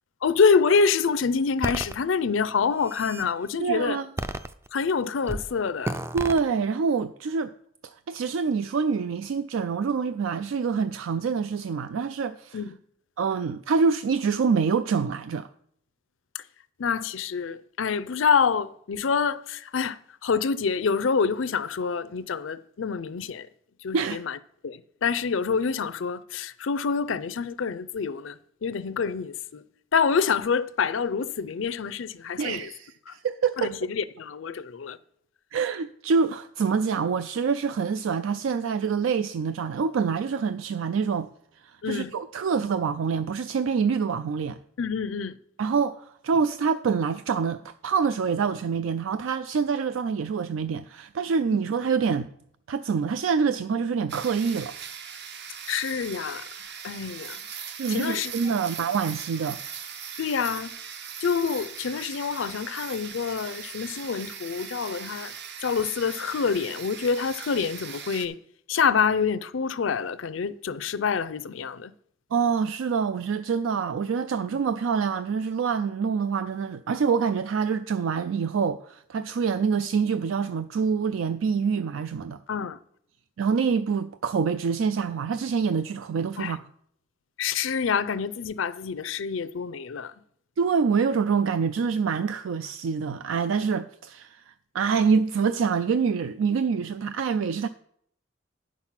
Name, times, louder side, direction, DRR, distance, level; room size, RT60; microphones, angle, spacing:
voice 1, 0.2-4.0 4.7-6.0 12.5-12.8 16.3-16.4 16.8-23.5 23.8-24.4 24.6-29.6 29.9-32.7 33.1-33.2 33.6-35.0 41.8-42.1 44.8-45.4 55.7-56.5 56.8-57.4 57.9-58.3 60.2-60.7 61.2-65.3 65.6-68.4 68.7-71.9 82.5-82.8 86.4-86.5 87.4-90.1, left 5 dB, 80° left, 0.5 m, -26 dB
sound 1, 1.6-1.9 2.6-3.3 4.2-4.9 5.3-5.5 5.8-6.4, right 1 dB, 15° right, 0.3 m, -32 dB
voice 2, 3.6-4.1 6.1-7.5 8.1-12.6 13.2-15.5 23.9-24.2 32.4-33.8 35.5-41.3 41.9-44.6 45.6-52.3 52.7-54.7 57.7-59.6 72.3-82.4 83.4-86.6 90.6-94.4 94.7-97.7, right 5 dB, 85° right, 0.4 m, -26 dB
sound 2, 54.1-68.3, right 7 dB, 60° right, 0.8 m, -40 dB
9.6 x 6.1 x 5.8 m
head